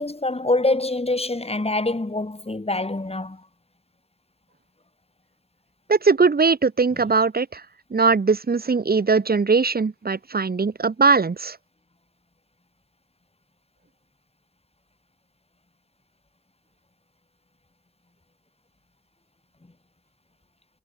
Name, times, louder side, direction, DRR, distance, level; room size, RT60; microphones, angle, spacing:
voice 1, 0.0-3.4 6.9-7.0, left 2 dB, 30° left, 3.4 m, -25 dB
voice 2, 5.9-7.6 7.9-11.6, right 4 dB, 55° right, 1.0 m, -20 dB
wide cardioid pair, 65°, 19 cm